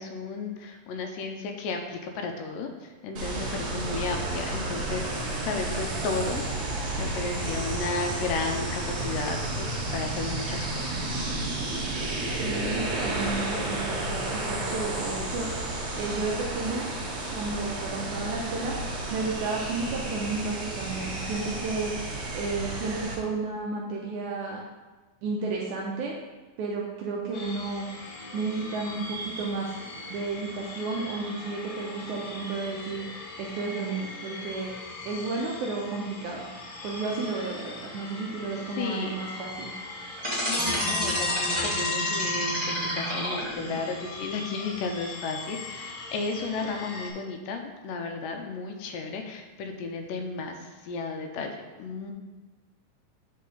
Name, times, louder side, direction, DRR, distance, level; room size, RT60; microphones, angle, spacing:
voice 1, 0.0-6.4 6.9-11.1 38.8-39.2 40.5-52.1, left 4 dB, 80° left, 4 dB, 2.2 m, -34 dB
sound 1, 3.2-23.2, right 2 dB, 60° right, 2.3 m, -32 dB
voice 2, 12.4-15.5 15.9-16.9 17.3-18.8 19.1-21.9 22.3-24.6 25.2-26.2 26.6-27.9 28.3-29.8 30.1-33.1 33.4-34.7 35.1-36.5 36.8-39.7, right 3 dB, 80° right, -2 dB, 1.8 m, -32 dB
sound 2, 27.3-47.1, left 2 dB, 60° left, 2.0 m, -41 dB
sound 3, 40.2-43.7, left 1 dB, 25° right, 0.5 m, -28 dB
8.4 x 4.1 x 3.8 m, 1.2 s
omnidirectional pair, 4.1 m